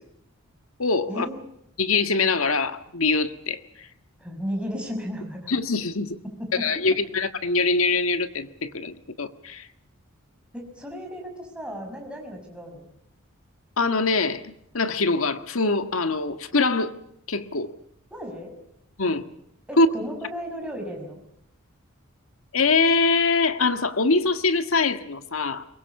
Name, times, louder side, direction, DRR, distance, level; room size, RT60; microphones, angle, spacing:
voice 1, 0.8-1.3 1.8-3.9 5.5-6.2 6.6-9.7 13.8-16.9 17.3-17.7 19.0-19.2 19.8-19.9 22.5-25.6, left 3 dB, 80° left, 9 dB, 1.6 m, -23 dB
voice 2, 4.2-5.5 6.2-7.0 10.5-12.9 18.1-18.5 19.7-21.2, equal, 5° right, 1 dB, 5.9 m, -34 dB
23.5 x 22.0 x 7.1 m, 0.77 s
head